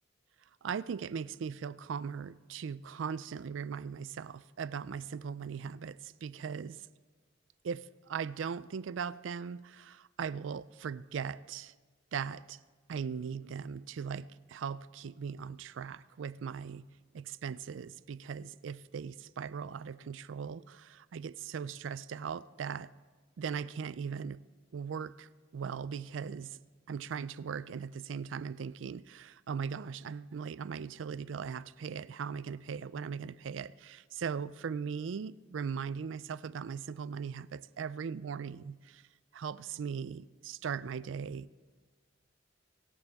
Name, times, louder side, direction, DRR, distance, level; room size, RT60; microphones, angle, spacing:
voice 1, 0.6-6.8 7.6-11.7 12.1-12.6 12.9-16.9 17.1-22.9 23.4-24.4 24.7-26.6 26.9-39.0 39.3-41.5, right 6 dB, 90° right, 0.4 m, -39 dB
23.5 x 12.0 x 3.5 m
head